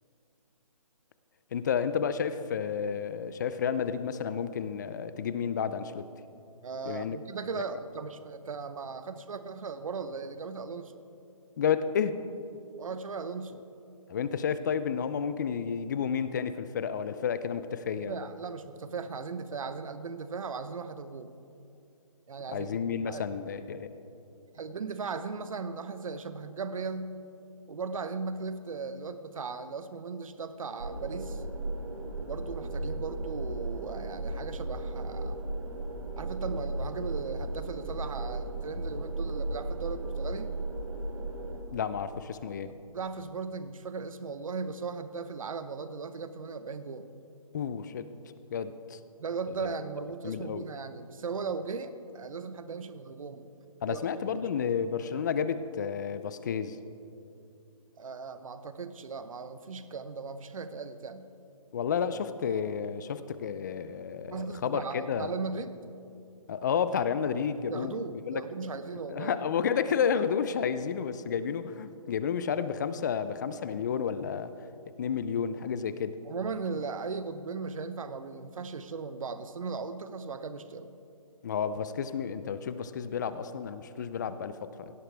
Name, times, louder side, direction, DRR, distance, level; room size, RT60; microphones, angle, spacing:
voice 1, 1.5-6.1 6.9-7.2 11.6-12.2 14.1-18.1 22.5-23.9 41.7-42.7 47.5-48.1 48.5-49.0 50.2-50.7 53.8-56.8 61.7-65.3 66.5-67.9 68.3-68.4 69.1-74.5 75.0-76.2 81.4-84.9, left 7 dB, 30° left, 13 dB, 0.5 m, -31 dB
voice 2, 6.6-10.9 12.8-13.6 18.1-21.3 22.3-22.8 23.1-23.2 24.5-27.2 27.7-31.4 32.2-35.4 36.2-40.5 42.6-47.1 49.2-53.4 53.9-54.0 54.3-54.4 58.0-61.3 64.3-65.7 67.7-69.4 76.2-80.9, right 4 dB, 70° right, 11 dB, 0.9 m, -37 dB
sound 1, 30.8-41.6, right 2 dB, 85° right, 2.5 m, -35 dB
17.0 x 12.5 x 3.4 m, 2.6 s
hypercardioid pair, 155°, 18 cm